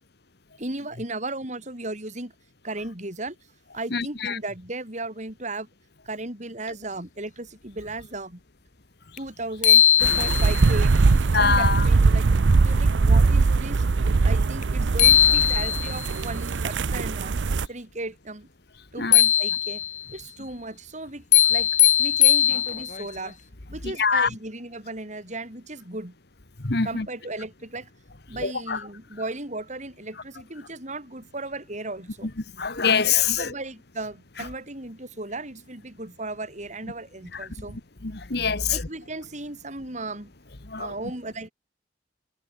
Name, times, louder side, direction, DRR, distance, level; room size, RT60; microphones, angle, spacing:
voice 1, 0.6-2.3 2.6-3.3 3.7-5.7 6.0-8.4 9.2-10.9 11.4-12.3 12.6-13.8 14.2-17.4 17.7-18.5 18.9-19.8 20.1-21.7 22.0-23.4 23.7-26.1 26.8-27.9 28.3-32.3 33.4-37.8 38.7-40.3 40.8-41.5, right 2 dB, 40° right, 6.8 m, -36 dB
voice 2, 3.9-4.4 11.3-11.8 19.0-19.2 24.0-24.3 26.6-27.1 28.4-28.8 32.6-33.5 38.0-38.8 40.7-40.9, left 6 dB, 65° left, 1.8 m, -24 dB
sound 1, 9.2-9.3 9.6-10.7 14.6-14.7 15.0-16.1 19.1-20.0 21.3-23.1, left 10 dB, 45° left, 2.2 m, -19 dB
sound 2, 10.0-17.7, right 3 dB, 80° right, 0.6 m, -21 dB
head